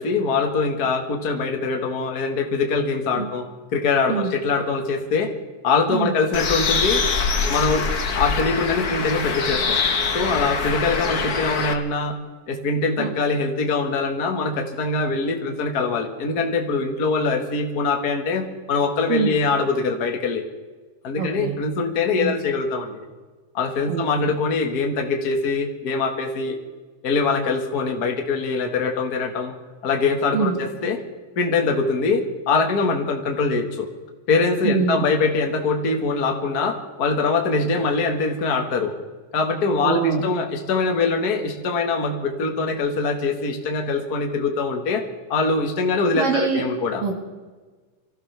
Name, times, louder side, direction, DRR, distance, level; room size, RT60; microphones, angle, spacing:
voice 1, 0.0-5.3 5.6-7.0 7.5-7.9 8.1-9.8 10.1-12.2 12.5-20.4 21.0-23.1 23.5-26.6 27.0-29.5 29.8-31.0 31.4-33.9 34.3-38.9 39.3-47.0, left 4 dB, 35° left, 3 dB, 1.8 m, -23 dB
Bird, 6.3-11.7, left 5 dB, 85° left, 0.8 m, -24 dB
voice 2, 21.2-21.5 22.2-22.3 23.9-24.3 30.3-30.6 34.6-35.1 39.8-40.3 46.2-46.6 47.0-47.2, right 6 dB, 85° right, 2 dB, 3.5 m, -24 dB
25.5 x 15.5 x 3.5 m, 1.4 s
omnidirectional pair, 3.8 m